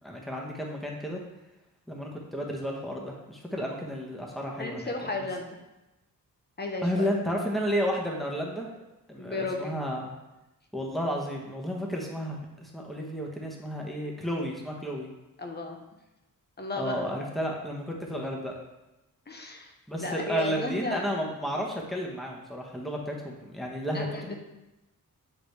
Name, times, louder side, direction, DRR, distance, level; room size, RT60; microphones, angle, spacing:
voice 1, 0.0-1.2 1.9-5.3 6.8-8.7 9.1-10.1 10.7-15.1 16.8-18.6 19.9-24.4, equal, ahead, -1 dB, 1.2 m, -32 dB
voice 2, 4.6-5.6 6.6-7.1 9.2-9.8 15.4-15.8 16.6-17.3 19.3-19.7 20.0-21.0 23.9-24.4, left 2 dB, 30° left, 2 dB, 1.0 m, -34 dB
8.3 x 3.8 x 3.4 m, 0.98 s
wide cardioid pair, 85°, 34 cm